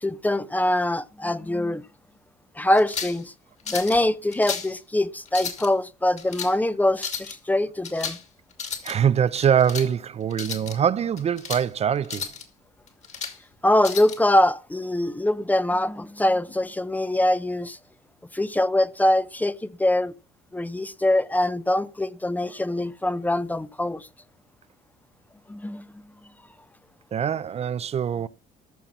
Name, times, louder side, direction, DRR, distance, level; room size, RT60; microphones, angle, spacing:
voice 1, 0.0-1.8 2.6-3.3 3.7-8.2 13.6-17.8 18.3-19.5 19.8-20.1 20.5-24.1 25.5-25.8, left 1 dB, 10° left, 0.6 m, -23 dB
sound 1, 2.8-3.2 3.7-4.0 4.3-4.7 5.3-5.7 6.2-6.5 7.0-7.3 7.8-8.2 8.5-8.9 9.4-9.9 10.3-10.8 11.2-11.7 12.0-12.4 12.9-13.4 13.8-14.2, left 6 dB, 45° left, 2.8 m, -33 dB
voice 2, 8.8-12.3 27.1-28.3, right 8 dB, 40° right, 0.5 m, -23 dB
14.0 x 5.7 x 7.2 m
cardioid pair, 110°, 17 cm